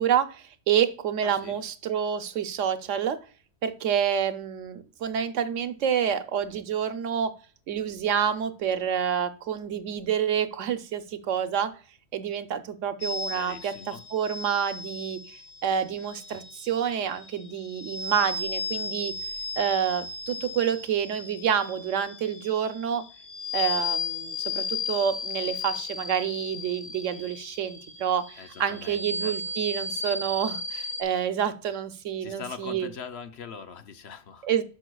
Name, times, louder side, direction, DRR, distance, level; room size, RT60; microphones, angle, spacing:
voice 1, 0.0-3.2 3.6-7.3 7.7-11.7 12.1-19.1 19.6-23.0 23.5-32.9 34.4-34.6, right 8 dB, 75° right, 10 dB, 1.1 m, -28 dB
voice 2, 1.2-1.6 13.3-14.0 28.4-29.4 32.2-34.5, left 6 dB, 60° left, 9 dB, 0.9 m, -42 dB
sound 1, 13.0-31.0, left 4 dB, 90° left, 1.7 m, -35 dB
11.0 x 6.4 x 2.3 m, 0.39 s
omnidirectional pair, 1.3 m